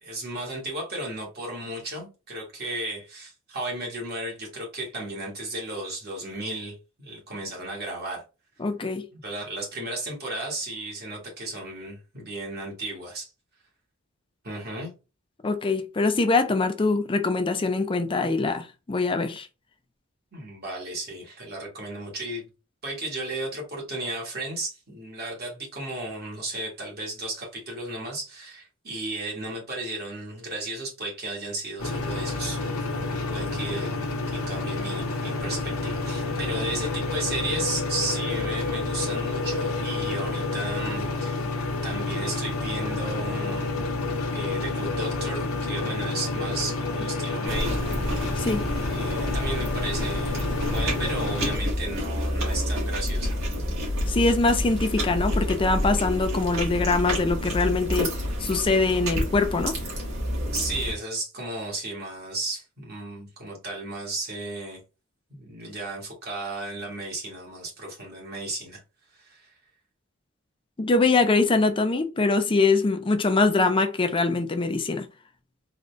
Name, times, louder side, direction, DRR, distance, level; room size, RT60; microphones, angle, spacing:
voice 1, 0.0-8.2 9.1-13.3 14.4-14.9 20.3-22.5 22.8-33.0 33.3-34.0 34.5-41.5 41.8-43.8 44.3-47.8 48.9-50.4 50.7-53.4 60.5-64.8 65.3-68.8 69.1-69.5, right 2 dB, 50° right, 1.6 m, -34 dB
voice 2, 8.6-9.1 15.4-19.5 48.4-48.7 54.1-58.1 58.4-59.8 70.8-75.1, left 3 dB, 25° left, 0.4 m, -23 dB
sound 1, 31.8-51.6, left 3 dB, 80° left, 1.0 m, -29 dB
sound 2, 47.4-60.9, equal, 70° right, 1.7 m, -29 dB
3.8 x 2.4 x 3.2 m
head